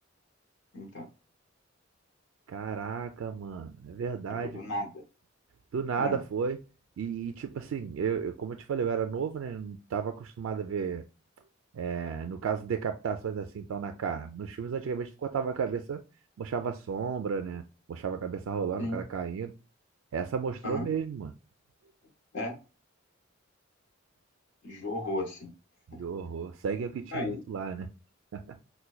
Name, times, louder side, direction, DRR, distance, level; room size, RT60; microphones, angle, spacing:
voice 1, 0.7-1.1 4.3-5.0 6.0-6.2 18.8-19.0 20.6-20.8 22.3-22.6 24.6-25.5 27.1-27.4, left 1 dB, 65° left, 0.8 m, -34 dB
voice 2, 2.5-4.6 5.7-6.6 7.0-11.0 11.7-16.0 16.4-17.6 17.9-19.5 20.1-21.3 25.9-27.9 28.3-28.6, right 6 dB, 80° right, 0.3 m, -33 dB
5.5 x 2.2 x 2.3 m
head